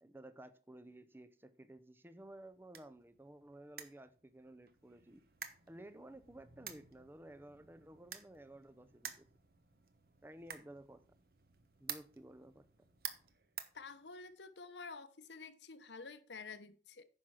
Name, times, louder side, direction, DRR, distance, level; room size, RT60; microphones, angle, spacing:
voice 1, 0.0-5.2 5.7-9.3 10.2-11.0 11.8-12.7, right 1 dB, 10° right, 0.6 m, -55 dB
sound 1, 2.2-14.5, right 8 dB, 55° right, 1.1 m, -52 dB
voice 2, 13.7-17.0, left 4 dB, 80° left, 1.0 m, -50 dB
9.7 x 6.1 x 5.7 m
head